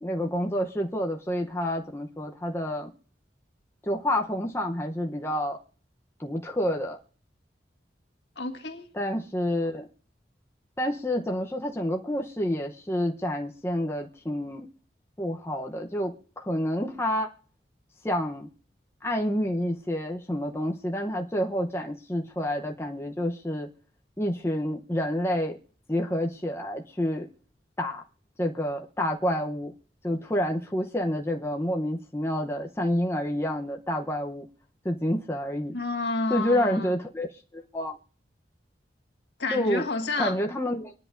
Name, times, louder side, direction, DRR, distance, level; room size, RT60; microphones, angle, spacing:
voice 1, 0.0-2.9 3.8-5.6 6.2-7.0 8.9-9.9 10.8-14.7 15.2-17.3 18.0-18.5 19.0-23.7 24.2-25.6 25.9-27.3 27.8-28.0 28.4-29.7 30.0-34.5 34.8-35.7 36.3-38.0 39.5-39.9 40.2-40.9, equal, 15° left, 0.7 m, -28 dB
voice 2, 8.3-8.8 35.7-37.0 39.4-40.4, left 3 dB, 70° left, 1.7 m, -30 dB
25.5 x 10.5 x 2.5 m
head